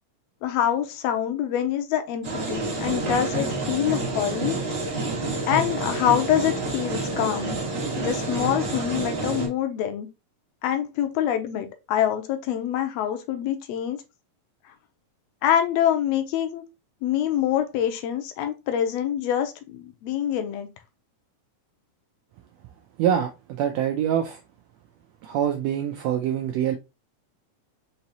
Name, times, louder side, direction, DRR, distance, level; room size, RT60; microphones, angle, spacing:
voice 1, 0.4-4.6 5.5-7.5 8.0-10.1 10.6-14.0 15.4-16.6 17.0-20.7, left 10 dB, 75° left, 1.6 m, -25 dB
sound 1, 2.2-9.5, right 3 dB, 60° right, 0.5 m, -28 dB
voice 2, 23.0-24.4 25.2-26.8, right 9 dB, 85° right, 1.5 m, -25 dB
5.4 x 2.9 x 2.8 m
omnidirectional pair, 3.5 m